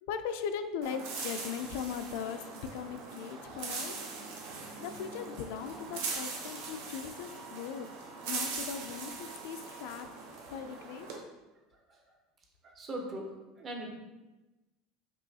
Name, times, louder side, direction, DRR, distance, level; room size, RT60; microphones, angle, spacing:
voice 1, 0.0-2.4 2.7-4.0 4.8-7.9 8.3-10.1 10.5-11.1, left 7 dB, 70° left, 8 dB, 0.3 m, -39 dB
sound 1, 0.8-11.2, right 4 dB, 80° right, 0.8 m, -41 dB
Wind instrument woodwind instrument, 5.6-10.1, right 6 dB, 40° right, 1.3 m, -55 dB
voice 2, 11.5-13.3 13.6-14.0, right 1 dB, 25° right, 2 dB, 0.6 m, -42 dB
5.3 x 3.0 x 2.7 m, 1.1 s
cardioid pair, 165°, 0 cm